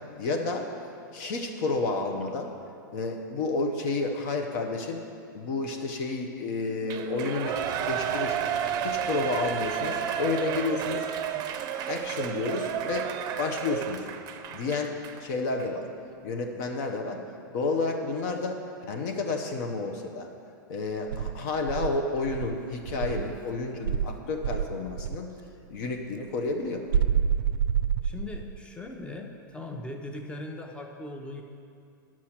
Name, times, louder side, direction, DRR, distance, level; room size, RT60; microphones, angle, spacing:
voice 1, 0.2-0.7 1.1-2.5 2.9-5.0 5.3-8.4 8.8-11.1 11.9-14.1 14.5-15.9 16.2-17.2 17.5-18.6 18.9-20.3 20.7-25.3 25.7-26.8, left 3 dB, 55° left, 3 dB, 0.9 m, -30 dB
Shout / Cheering, 6.9-15.2 15.6-15.7, right 9 dB, 35° right, 0.6 m, -31 dB
Insect, 21.1-23.4 23.8-25.3 26.9-28.6, right 8 dB, 85° right, 0.4 m, -28 dB
voice 2, 28.0-31.4, left 2 dB, 10° left, 3 dB, 0.8 m, -39 dB
8.5 x 6.1 x 6.0 m, 2.5 s
hypercardioid pair, 120°, 11 cm